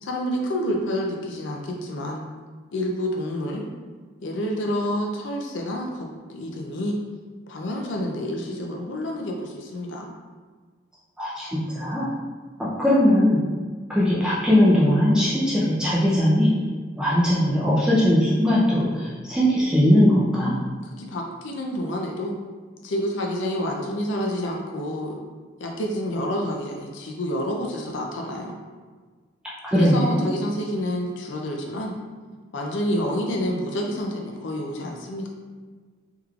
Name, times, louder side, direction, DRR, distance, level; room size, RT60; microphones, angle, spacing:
voice 1, 0.0-2.2 2.7-3.6 4.2-7.0 7.5-10.1 21.0-22.3 22.8-25.2 25.6-28.5 29.7-31.9 32.5-35.3, equal, 70° left, 0 dB, 0.4 m, -28 dB
voice 2, 11.2-12.1 12.8-13.4 13.9-16.5 17.0-20.5 29.6-30.2, equal, 5° right, -8 dB, 0.4 m, -19 dB
3.5 x 3.1 x 2.3 m, 1.5 s
head